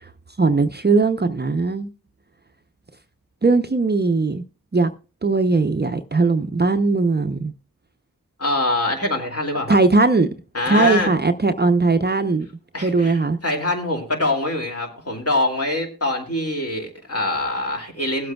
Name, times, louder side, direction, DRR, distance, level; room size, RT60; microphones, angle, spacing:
voice 1, 0.4-1.9 3.4-4.4 4.7-4.9 5.2-7.5 9.7-10.3 10.7-12.5 12.8-13.4, right 3 dB, 30° right, 0.7 m, -19 dB
voice 2, 8.4-9.8 10.5-11.1 12.7-18.3, left 2 dB, 40° left, 2.5 m, -24 dB
21.0 x 7.7 x 2.3 m
cardioid pair, 50°, 35 cm